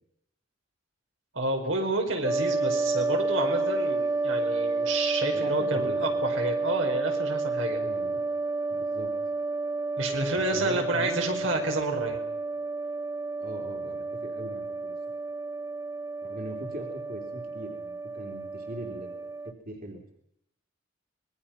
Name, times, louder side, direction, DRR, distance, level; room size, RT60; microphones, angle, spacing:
voice 1, 1.3-7.8 10.0-12.2, right 2 dB, 80° right, 2 dB, 5.0 m, -29 dB
sound 1, 2.2-19.5, right 3 dB, 15° right, 0.9 m, -30 dB
voice 2, 5.3-6.0 7.7-8.2 8.7-9.1 10.3-11.4 13.4-14.9 16.2-20.0, right 1 dB, 50° right, 1 dB, 3.3 m, -40 dB
26.0 x 21.0 x 5.9 m, 0.78 s
head